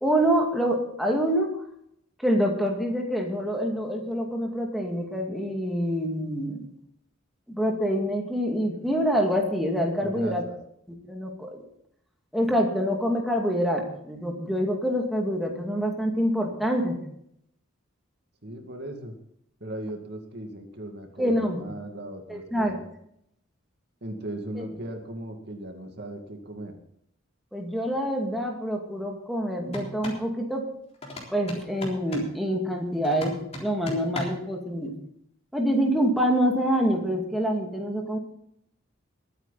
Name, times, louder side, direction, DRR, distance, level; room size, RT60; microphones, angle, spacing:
voice 1, 0.0-1.6 2.2-6.6 7.5-10.4 11.0-11.6 12.3-17.0 21.2-21.6 22.3-22.8 24.6-24.7 27.5-30.7 31.3-35.0 35.5-38.2, equal, ahead, 0 dB, 2.3 m, -26 dB
voice 2, 10.0-10.6 18.4-19.1 19.6-22.8 24.0-26.7, right 1 dB, 55° right, 4 dB, 2.2 m, -37 dB
sound 1, 29.7-30.3 31.0-32.4 33.0-34.5, left 1 dB, 30° left, 3.8 m, -37 dB
22.0 x 9.2 x 4.1 m, 0.72 s
head